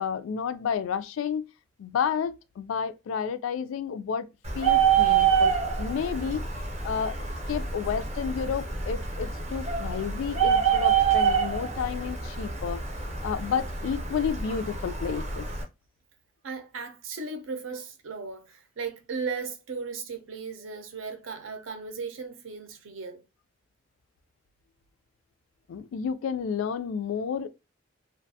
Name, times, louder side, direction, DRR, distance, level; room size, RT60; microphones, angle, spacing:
voice 1, 0.0-1.4 1.8-4.3 4.5-6.4 6.8-7.2 7.5-15.5 25.7-27.5, left 7 dB, 80° left, 0.3 m, -31 dB
Bird, 4.4-15.6, right 7 dB, 35° right, 0.6 m, -26 dB
voice 2, 16.4-23.2, right 4 dB, 80° right, 0.6 m, -36 dB
2.4 x 2.2 x 2.6 m
head